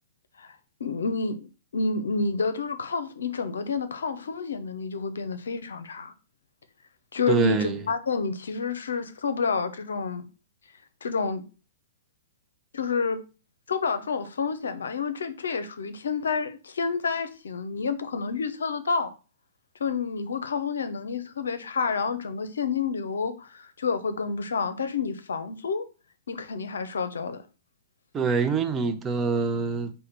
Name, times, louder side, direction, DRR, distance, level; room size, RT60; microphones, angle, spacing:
voice 1, 0.8-1.5 1.7-6.1 7.1-10.3 11.0-11.4 12.7-13.2 13.7-19.1 19.8-25.8 26.3-27.4, left 5 dB, 75° left, 0.6 m, -29 dB
voice 2, 7.3-7.9 28.1-29.9, right 5 dB, 20° right, 0.5 m, -25 dB
4.8 x 2.2 x 4.4 m
hypercardioid pair, 115°, 0 cm